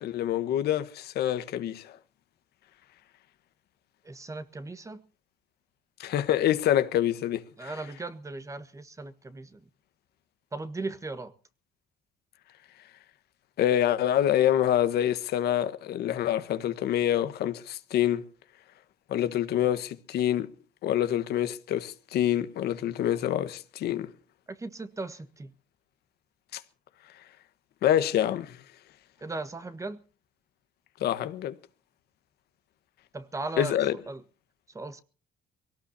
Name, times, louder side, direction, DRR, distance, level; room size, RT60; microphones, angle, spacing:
voice 1, 0.0-2.0 6.0-7.7 13.6-18.3 19.1-20.5 20.8-24.1 26.5-26.6 27.8-28.6 31.0-31.6 33.6-34.0, left 11 dB, 70° left, 1.4 m, -26 dB
voice 2, 4.0-5.0 7.6-9.6 10.5-11.3 24.5-25.5 29.2-30.0 33.1-34.2 34.7-35.0, right 3 dB, 20° right, 1.4 m, -37 dB
23.5 x 17.5 x 2.8 m
cardioid pair, 110°, 17 cm